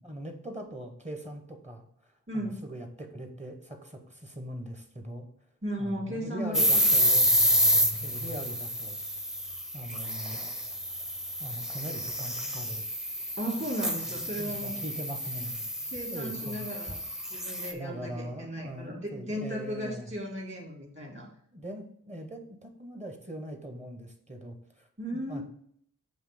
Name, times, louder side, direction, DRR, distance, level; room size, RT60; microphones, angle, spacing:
voice 1, 0.0-1.9 2.3-5.3 5.8-7.2 7.7-9.0 9.7-10.5 11.4-12.8 14.1-15.7 16.1-16.7 17.7-20.1 21.5-25.4, right 1 dB, 20° right, 4 dB, 1.0 m, -41 dB
voice 2, 5.6-6.8 13.4-14.8 15.8-17.0 17.3-21.3 25.0-25.4, equal, 35° right, 0 dB, 2.1 m, -35 dB
sound 1, 6.5-17.7, equal, ahead, 0.6 m, -29 dB
7.3 x 2.9 x 5.0 m, 0.65 s
wide cardioid pair, 85°, 33 cm